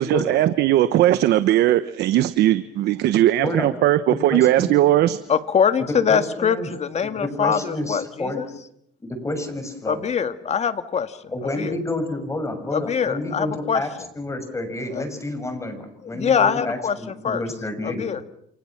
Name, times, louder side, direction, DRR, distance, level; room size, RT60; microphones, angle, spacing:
voice 1, 0.0-5.2, right 13 dB, 75° right, 13 dB, 1.1 m, -18 dB
voice 2, 4.1-4.7 5.8-6.7 7.2-8.4 9.0-10.0 11.3-18.0, left 2 dB, 15° left, 7 dB, 6.5 m, -29 dB
voice 3, 5.3-8.5 9.9-11.2 11.6-11.8 12.7-13.8 14.9-15.0 16.0-17.4 17.8-18.2, left 7 dB, 40° left, 10 dB, 2.0 m, -23 dB
28.5 x 28.0 x 6.0 m, 0.73 s
cardioid pair, 110°, 17 cm